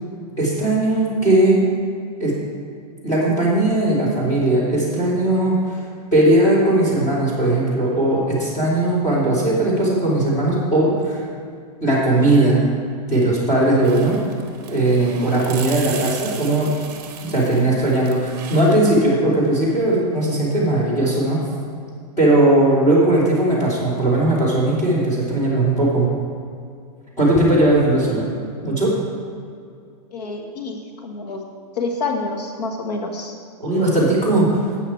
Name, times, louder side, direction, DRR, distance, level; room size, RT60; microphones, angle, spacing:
voice 1, 0.4-1.7 2.2-2.4 3.0-5.6 6.1-11.2 11.8-12.6 13.1-14.2 14.7-16.7 17.2-21.4 22.2-26.1 27.2-28.3 28.6-28.9 33.6-34.6, right 1 dB, 15° left, -8 dB, 3.2 m, -18 dB
sound 1, 13.8-18.8, right 7 dB, 25° right, 1.3 m, -36 dB
voice 2, 30.1-31.4 31.7-33.3, left 3 dB, 80° left, 3 dB, 1.5 m, -27 dB
13.0 x 8.9 x 4.5 m, 2.3 s
supercardioid pair, 180°, 21 cm